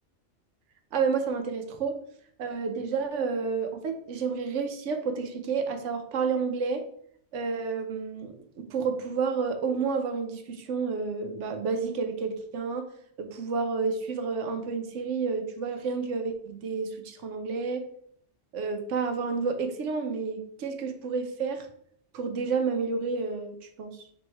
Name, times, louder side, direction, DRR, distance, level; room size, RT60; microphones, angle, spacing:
voice 1, 0.9-2.0 2.4-6.8 7.3-12.9 13.2-17.9 18.5-21.7 22.1-23.9, right 5 dB, 85° right, 6 dB, 1.0 m, -30 dB
3.5 x 3.2 x 4.4 m, 0.65 s
omnidirectional pair, 1.2 m